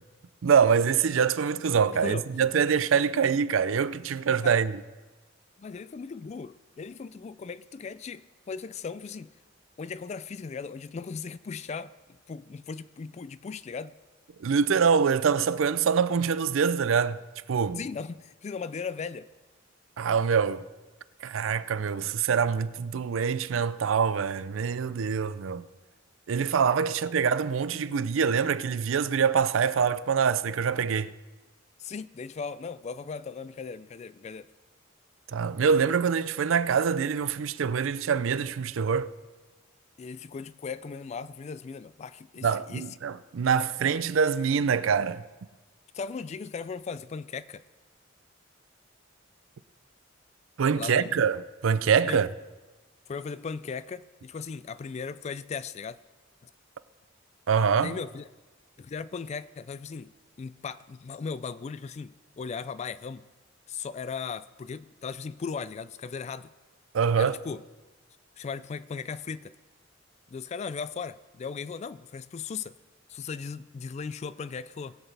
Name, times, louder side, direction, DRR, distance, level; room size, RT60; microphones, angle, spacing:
voice 1, 0.4-4.7 14.4-17.2 17.5-17.8 20.0-20.6 21.2-25.7 26.3-31.1 35.3-39.1 42.4-45.2 50.6-52.3 57.5-58.0 66.9-67.4, right 6 dB, 80° right, 0.4 m, -25 dB
voice 2, 1.9-2.2 4.4-4.6 5.6-9.3 9.8-11.9 12.3-14.0 17.8-19.3 31.8-34.5 40.0-42.9 45.9-47.6 50.8-51.2 52.0-52.2 53.1-56.0 56.4-56.5 57.7-58.3 58.8-63.2 63.7-66.5 67.1-67.6 68.4-69.5 70.3-72.8 73.1-75.0, left 5 dB, 35° left, 0.3 m, -37 dB
20.5 x 8.0 x 3.3 m
head